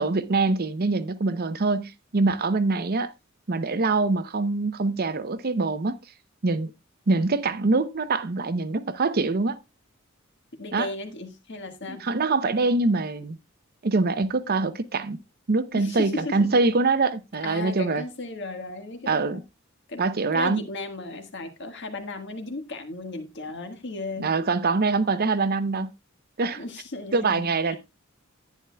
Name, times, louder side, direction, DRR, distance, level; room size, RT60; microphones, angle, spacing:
voice 1, 0.0-3.1 3.5-6.0 6.4-6.7 7.1-9.6 10.7-10.9 11.9-13.4 13.8-15.2 15.5-18.0 19.1-19.4 20.0-20.6 24.2-25.9 26.4-26.6 27.1-27.8, right 3 dB, 50° right, 0.7 m, -24 dB
voice 2, 10.6-12.0 15.7-16.5 17.4-19.4 19.9-20.0 20.3-24.3 26.6-27.8, left 3 dB, 60° left, 1.6 m, -35 dB
10.5 x 9.8 x 2.3 m
head